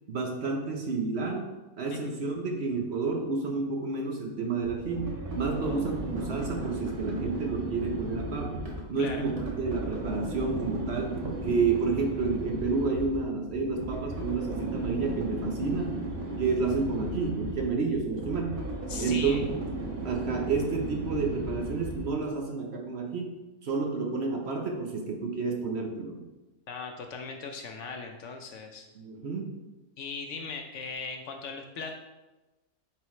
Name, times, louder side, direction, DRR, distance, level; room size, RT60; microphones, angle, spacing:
voice 1, 0.1-8.6 8.9-16.0 16.4-18.6 19.0-19.5 20.0-23.3 23.6-26.2 28.9-29.6, right 4 dB, 55° right, 2 dB, 0.9 m, -30 dB
sound 1, 4.1-4.2 4.7-4.8 6.0-7.2 8.5-10.2, left 1 dB, 25° right, 1.2 m, -47 dB
sound 2, 4.6-22.2, right 2 dB, 80° right, 1.6 m, -36 dB
voice 2, 9.0-9.3 18.9-19.4 26.7-28.9 30.0-31.9, left 4 dB, 65° left, 4 dB, 0.9 m, -39 dB
8.7 x 3.8 x 3.1 m, 1.1 s
omnidirectional pair, 1.5 m